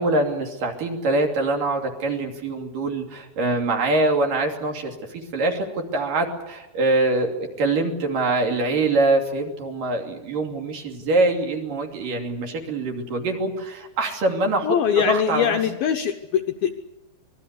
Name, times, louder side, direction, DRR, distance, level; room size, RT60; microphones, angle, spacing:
voice 1, 0.0-14.8 15.1-15.6, right 2 dB, 50° right, 3 dB, 4.2 m, -24 dB
voice 2, 14.6-16.7, left 8 dB, 70° left, 6 dB, 2.3 m, -22 dB
26.0 x 21.0 x 8.4 m, 0.95 s
omnidirectional pair, 5.4 m